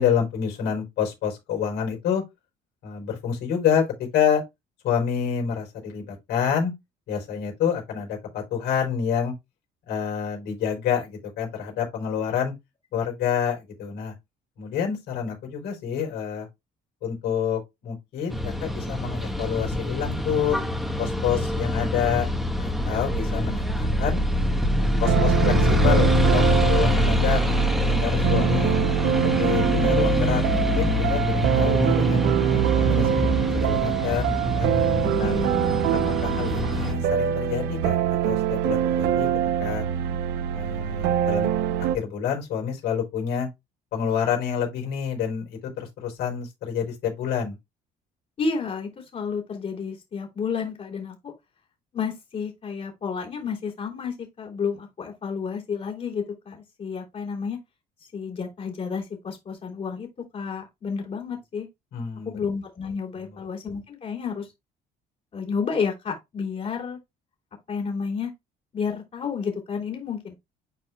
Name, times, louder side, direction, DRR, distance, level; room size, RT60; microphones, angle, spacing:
voice 1, 0.0-2.2 2.8-3.8 4.1-4.4 4.8-6.7 7.1-9.3 9.9-12.5 12.9-14.1 14.6-16.5 17.0-20.6 21.0-22.3 22.6-24.2 25.0-27.4 27.9-28.7 29.2-34.7 35.2-35.4 36.2-38.0 38.2-39.3 39.6-39.9 40.5-41.5 41.9-43.5 43.9-47.6 61.9-62.4 63.2-63.4, left 8 dB, 80° left, 4.5 m, -28 dB
sound 1, 18.3-36.9, left 1 dB, ahead, 1.6 m, -24 dB
sound 2, 25.0-42.0, right 10 dB, 85° right, 0.8 m, -24 dB
voice 2, 28.3-28.7 35.0-36.5 48.4-51.3 51.9-57.6 58.1-60.1 60.3-61.7 62.2-64.5 65.3-67.0 67.7-68.3 68.7-70.3, left 5 dB, 45° left, 3.4 m, -31 dB
11.0 x 4.4 x 2.3 m
cardioid pair, 110°, 17 cm